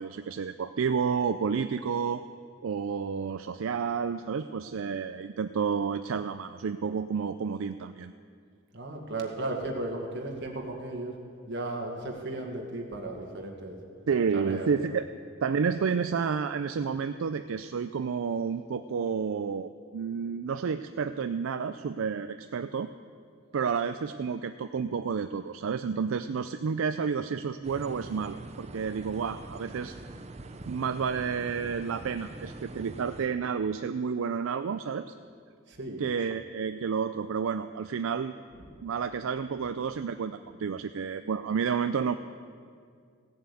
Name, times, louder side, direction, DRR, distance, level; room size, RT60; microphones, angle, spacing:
voice 1, 0.0-2.2 2.6-8.1 14.1-15.1 15.4-22.9 23.5-29.9 30.7-35.1 36.0-38.4 38.8-42.1, right 6 dB, 80° right, 10 dB, 0.4 m, -30 dB
voice 2, 8.7-11.1 11.5-13.8 14.3-14.7 35.7-36.0, right 2 dB, 60° right, 1 dB, 2.0 m, -35 dB
sound 1, 27.6-33.3, right 2 dB, 35° right, 0.6 m, -44 dB
16.0 x 7.7 x 8.4 m, 2.2 s
head